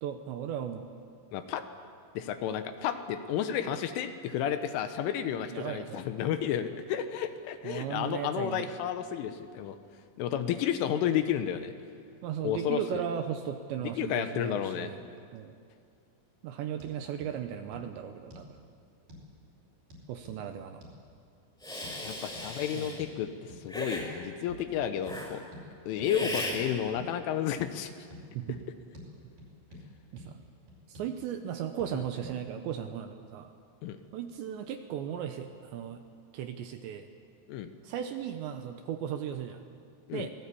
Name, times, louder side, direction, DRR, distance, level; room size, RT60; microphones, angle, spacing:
voice 1, 0.0-0.9 5.5-6.0 7.6-8.7 12.2-15.0 15.3-15.5 16.4-18.6 20.1-20.8 22.2-22.3 22.7-23.0 26.2-26.3 28.3-28.6 30.1-30.4 30.9-33.5 34.1-36.0 36.3-37.1 37.8-39.6 40.1-40.3, right 9 dB, 75° right, 7 dB, 2.8 m, -36 dB
voice 2, 1.3-1.7 2.1-9.8 10.2-11.7 12.4-13.0 13.8-14.9 22.0-23.3 23.6-25.4 25.9-27.9 31.9-32.0 33.8-34.0 37.5-37.7 40.1-40.3, left 9 dB, 75° left, 9 dB, 3.4 m, -32 dB
sound 1, 16.8-16.9 17.2-17.3 17.7-17.9 18.3-18.5 19.1-19.3 19.9-20.4 20.8-21.0 21.8-22.0 22.3-22.5 23.0-23.2 23.5-23.6 24.0-24.1 24.5-24.7 25.1-25.2 25.5-25.7 26.0-26.1 26.5-26.6 27.0-27.1 27.6-27.7 28.1-28.2 28.5-28.7 28.9-29.1 29.4-29.8 30.2-30.3 30.7-31.1 31.8-31.9 32.2-32.4, equal, 45° right, 6.3 m, -48 dB
Hiss, 21.6-23.0 23.7-24.1 25.0-25.3 26.0-26.6, left 1 dB, ahead, 4.5 m, -37 dB
26.0 x 19.0 x 8.5 m, 2.2 s
omnidirectional pair, 6.0 m